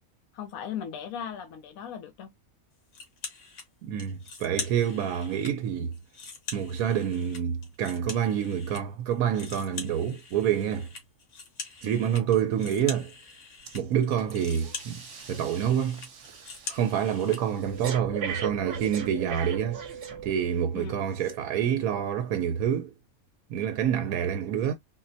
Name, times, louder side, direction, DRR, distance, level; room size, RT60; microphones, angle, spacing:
voice 1, 0.3-2.3 20.7-20.9, left 8 dB, 80° left, 1.1 m, -37 dB
sound 1, 2.9-3.7 4.0-5.5 5.9-8.8 9.1-17.4, left 4 dB, 60° left, 1.3 m, -42 dB
voice 2, 3.8-6.0 6.5-10.9 11.8-13.1 13.7-15.0 15.3-16.1 16.7-19.8 20.2-22.9 23.5-24.7, right 9 dB, 85° right, 1.1 m, -27 dB
Breathing, 13.7-13.8 14.2-20.6 21.2-21.3, right 6 dB, 60° right, 1.1 m, -39 dB
4.0 x 2.1 x 2.6 m
omnidirectional pair, 1.5 m